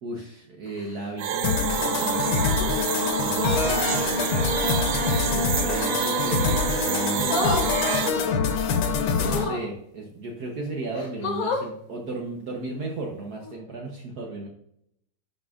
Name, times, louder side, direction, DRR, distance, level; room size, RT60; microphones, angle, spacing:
voice 1, 0.0-2.4 3.2-4.2 5.2-7.5 9.2-14.5, right 3 dB, 55° right, 0 dB, 1.3 m, -35 dB
sound 1, 0.6-1.1 2.3-2.7 5.0-5.4 7.2-7.7 9.2-9.7 10.5-10.6 10.9-11.7 13.3-13.5, left 2 dB, 50° left, 1.4 m, -31 dB
sound 2, 1.2-8.1, right 10 dB, 75° right, 1.3 m, -28 dB
sound 3, 1.4-9.5, left 5 dB, 75° left, 1.6 m, -25 dB
11.0 x 5.1 x 2.4 m, 0.72 s
omnidirectional pair, 2.3 m